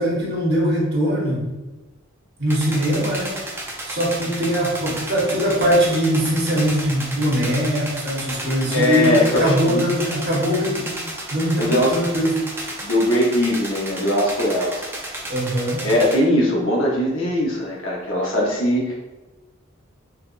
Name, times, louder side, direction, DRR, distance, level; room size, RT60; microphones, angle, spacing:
voice 1, 0.0-1.5 2.4-3.3 3.8-11.0 11.3-12.4 15.3-15.9, equal, 55° right, -3 dB, 0.9 m, -21 dB
sound 1, 2.5-16.1, right 1 dB, 10° right, 0.4 m, -33 dB
voice 2, 8.7-9.8 11.6-12.0 12.8-14.8 15.8-18.9, left 1 dB, 85° left, -3 dB, 0.9 m, -20 dB
3.8 x 2.2 x 2.5 m, 1.1 s
head